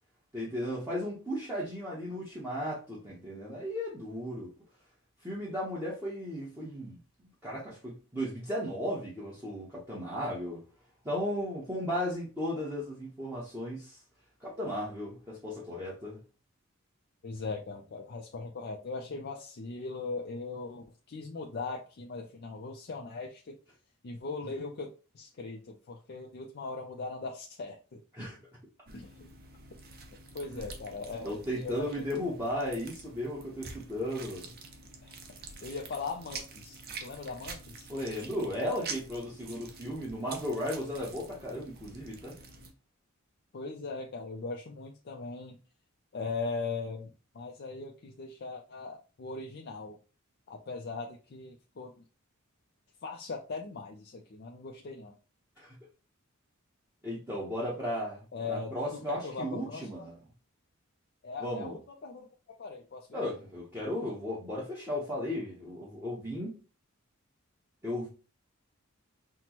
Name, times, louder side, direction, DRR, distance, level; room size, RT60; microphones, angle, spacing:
voice 1, 0.3-4.5 5.2-7.0 7.4-10.6 11.0-14.0 14.4-16.2 28.1-28.4 30.5-30.6 31.2-34.5 37.9-42.3 55.6-55.7 57.0-60.1 61.4-61.8 63.1-66.5 67.8-68.1, equal, 10° right, 0.9 m, -35 dB
voice 2, 17.2-23.6 24.0-28.0 28.9-29.3 30.3-32.0 35.0-37.9 43.5-45.6 46.1-50.0 50.5-52.0 53.0-55.1 58.3-59.9 61.2-63.2, left 4 dB, 50° left, 0.4 m, -40 dB
sound 1, 28.9-42.7, right 4 dB, 45° right, 0.7 m, -47 dB
5.8 x 2.1 x 2.9 m
head